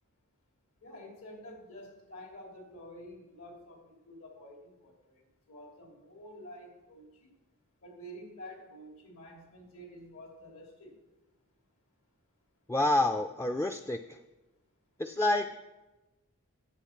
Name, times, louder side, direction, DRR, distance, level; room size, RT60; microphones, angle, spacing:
voice 1, 0.8-7.3 7.8-11.0, equal, 80° left, 1 dB, 2.7 m, -49 dB
voice 2, 12.7-14.2 15.0-15.5, left 2 dB, 10° left, 6 dB, 0.3 m, -28 dB
10.0 x 7.9 x 5.8 m, 1.1 s
head